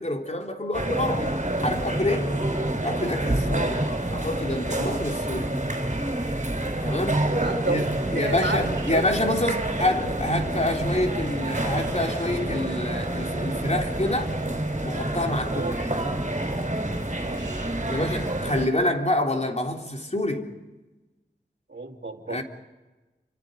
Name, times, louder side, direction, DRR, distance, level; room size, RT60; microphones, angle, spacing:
voice 1, 0.0-1.4 1.6-2.4 2.8-5.5 6.8-7.3 7.7-14.3 14.8-16.1 17.9-20.6 22.3-22.4, left 1 dB, 40° left, 3.5 m, -27 dB
sound 1, 0.7-18.7, right 1 dB, 45° right, 5.1 m, -28 dB
voice 2, 7.3-7.8 8.2-8.6 8.9-9.1 15.4-15.8 17.2-17.8 21.7-22.4, right 3 dB, 85° right, 2.5 m, -31 dB
29.0 x 25.5 x 5.2 m
wide cardioid pair, 40°, 18 cm